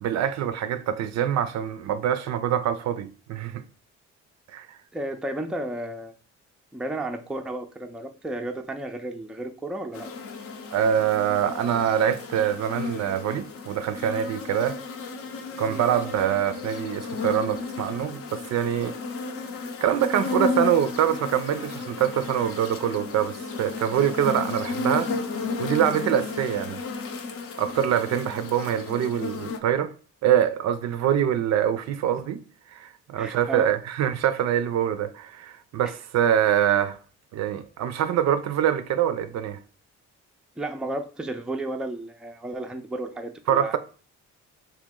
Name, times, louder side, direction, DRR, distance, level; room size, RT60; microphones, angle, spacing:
voice 1, 0.0-3.6 4.5-4.7 10.7-14.8 15.6-19.0 19.8-25.1 25.6-26.8 27.6-29.9 30.2-32.4 32.7-37.0 37.3-39.6 43.5-43.8, right 9 dB, 60° right, 0.4 m, -24 dB
voice 2, 4.9-6.1 6.7-10.1 15.7-15.8 33.2-33.7 35.8-35.9 40.6-43.8, right 2 dB, 5° right, 0.4 m, -33 dB
sound 1, 9.9-29.6, left 4 dB, 50° left, 0.6 m, -33 dB
3.1 x 2.8 x 3.6 m
cardioid pair, 90°, 30 cm